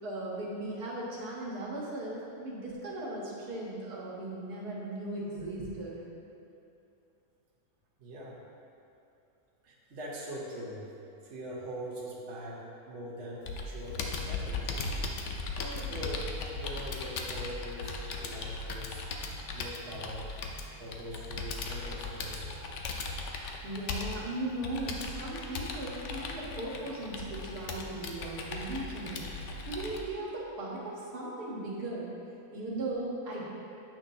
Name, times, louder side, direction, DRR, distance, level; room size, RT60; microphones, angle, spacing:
voice 1, 0.0-6.0 23.6-29.3 29.7-32.1 32.5-33.5, right 1 dB, 85° right, -5 dB, 1.8 m, -37 dB
voice 2, 8.0-8.4 9.6-10.9 11.2-14.9 15.2-19.0 19.5-20.2 20.8-22.6 32.5-32.6, equal, 50° right, -6 dB, 1.4 m, -42 dB
Computer keyboard, 13.5-30.0, left 3 dB, 60° left, 0.8 m, -38 dB
8.9 x 5.9 x 2.7 m, 2.7 s
omnidirectional pair, 1.6 m